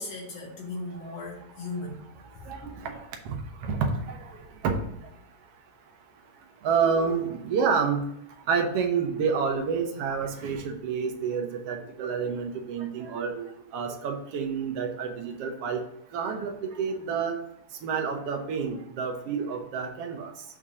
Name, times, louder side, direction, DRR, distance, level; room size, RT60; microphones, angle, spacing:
voice 1, 0.0-2.0, left 2 dB, 65° left, 1 dB, 1.8 m, -37 dB
voice 2, 2.5-4.2 4.6-4.7 6.6-8.0 8.5-13.4 13.7-15.8 16.1-17.4 17.8-20.3, right 6 dB, 70° right, 3 dB, 1.5 m, -29 dB
7.0 x 3.7 x 4.9 m, 0.77 s
omnidirectional pair, 3.5 m